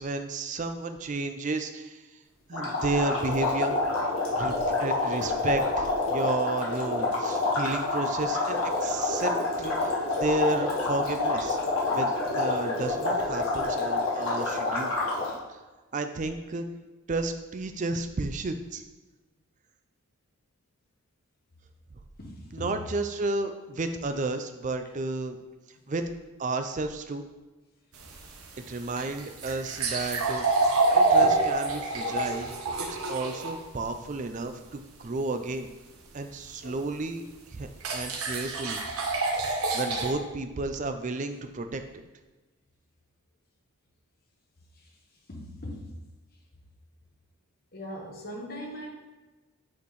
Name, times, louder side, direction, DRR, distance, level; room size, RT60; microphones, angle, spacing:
voice 1, 0.0-2.1 2.5-3.7 4.3-11.6 11.9-14.9 15.5-15.6 15.9-16.7 17.1-18.8 22.5-25.4 25.9-26.0 26.4-27.3 28.7-32.5 32.8-35.7 36.1-37.2 37.5-38.8 39.7-42.0, right 3 dB, 35° right, 7 dB, 0.4 m, -32 dB
sound 1, 2.5-15.3, left 2 dB, 75° left, 1.5 m, -28 dB
voice 2, 22.2-22.8 44.7-44.9 45.3-45.9 47.7-48.9, equal, 45° left, -1 dB, 1.1 m, -40 dB
sound 2, 27.9-33.5 36.6-36.7 37.8-40.1, right 3 dB, 85° right, 1.0 m, -26 dB
8.2 x 4.3 x 3.2 m, 1.2 s
head